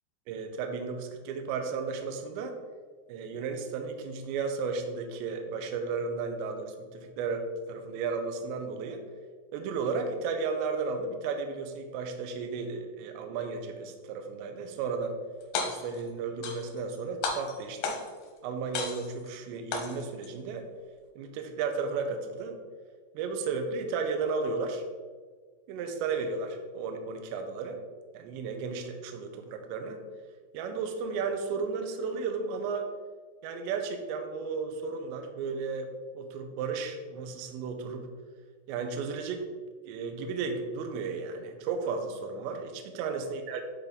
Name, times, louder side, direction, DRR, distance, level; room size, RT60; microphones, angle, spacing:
voice 1, 0.3-2.6 3.1-9.0 9.5-15.2 15.7-18.0 18.4-20.7 21.2-22.6 23.1-24.8 25.7-27.8 28.1-30.1 30.5-32.9 33.4-38.1 38.7-39.5 39.9-43.7, right 4 dB, 80° right, 5 dB, 2.7 m, -34 dB
sound 1, 15.4-16.0 16.4-17.0 17.2-18.2 18.7-19.3 19.7-20.3, left 4 dB, 75° left, 2.4 m, -33 dB
9.9 x 4.3 x 3.9 m, 1.5 s
omnidirectional pair, 5.8 m